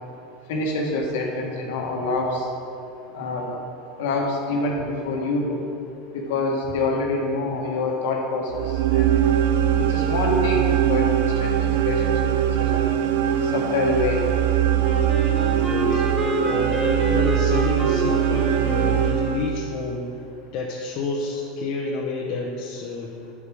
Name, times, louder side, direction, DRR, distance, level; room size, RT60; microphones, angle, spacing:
voice 1, 0.5-2.4 3.1-3.5 4.0-5.6 6.1-9.1 9.8-11.1 11.4-12.0 12.4-12.9 13.5-14.2, left 3 dB, 75° left, 0 dB, 1.4 m, -26 dB
sound 1, 8.5-19.8, right 10 dB, 80° right, 0.5 m, -21 dB
Wind instrument woodwind instrument, 14.8-19.5, equal, 10° right, 1.9 m, -28 dB
voice 2, 15.5-20.2 20.5-23.1, left 4 dB, 60° left, -2 dB, 0.9 m, -30 dB
9.6 x 5.2 x 4.9 m, 2.7 s
supercardioid pair, 105°, 0 cm